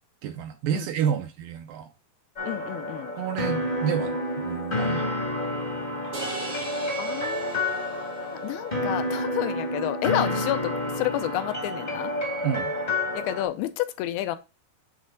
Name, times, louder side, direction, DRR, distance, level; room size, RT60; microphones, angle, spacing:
voice 1, 0.2-1.9 3.2-5.1 12.4-12.7, right 9 dB, 80° right, 2.1 m, -29 dB
voice 2, 2.4-3.1 7.0-12.1 13.1-14.4, left 14 dB, 85° left, 2.5 m, -30 dB
sound 1, 2.4-13.4, left 1 dB, 30° left, 0.7 m, -29 dB
sound 2, 6.1-8.5, right 3 dB, 55° right, 0.8 m, -38 dB
7.9 x 3.2 x 5.2 m
omnidirectional pair, 4.4 m